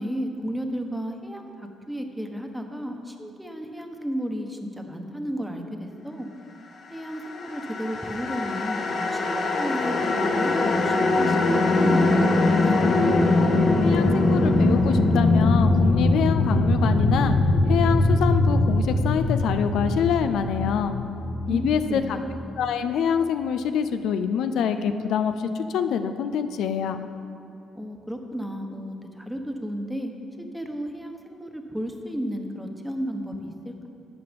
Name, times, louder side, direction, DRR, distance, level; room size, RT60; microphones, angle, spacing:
voice 1, 0.0-6.3 6.9-13.2 21.5-22.3 27.8-30.1 30.5-33.9, equal, 5° right, 4 dB, 1.2 m, -33 dB
sound 1, 7.3-22.5, left 2 dB, 55° left, 1.3 m, -22 dB
voice 2, 13.8-17.4 17.7-21.0 21.5-22.0 22.6-25.3 25.7-27.0, left 7 dB, 80° left, 9 dB, 0.5 m, -25 dB
12.5 x 7.7 x 5.3 m, 2.7 s
cardioid pair, 90°, 0 cm